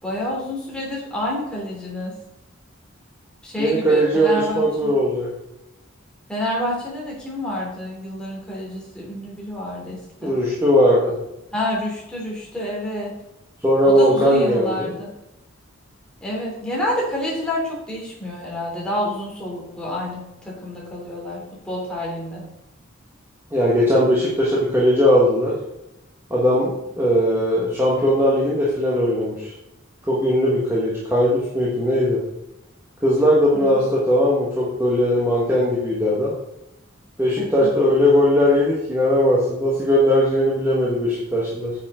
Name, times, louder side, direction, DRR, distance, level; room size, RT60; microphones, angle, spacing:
voice 1, 0.0-2.2 3.4-4.9 6.3-10.4 11.5-13.1 13.8-15.1 16.2-22.4 33.5-33.8 37.4-37.7, left 1 dB, 5° left, -5 dB, 3.1 m, -28 dB
voice 2, 3.6-5.3 10.2-11.1 13.6-14.9 23.5-25.5 26.3-29.5 30.1-32.2 33.0-36.3 37.2-41.7, equal, 10° right, -6 dB, 1.5 m, -19 dB
9.4 x 7.3 x 3.8 m, 0.90 s
head